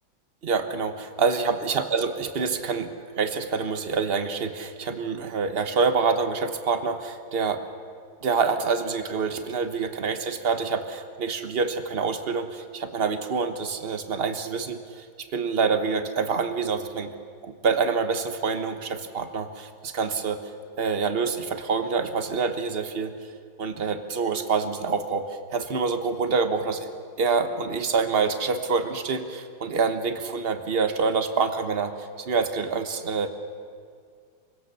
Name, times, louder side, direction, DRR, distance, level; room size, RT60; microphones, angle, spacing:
voice 1, 0.4-7.6 8.2-15.1 15.3-17.1 17.4-20.4 20.8-23.1 23.6-26.9 27.2-33.3, right 5 dB, 35° right, 8 dB, 1.1 m, -26 dB
25.0 x 16.5 x 6.9 m, 2.1 s
omnidirectional pair, 2.2 m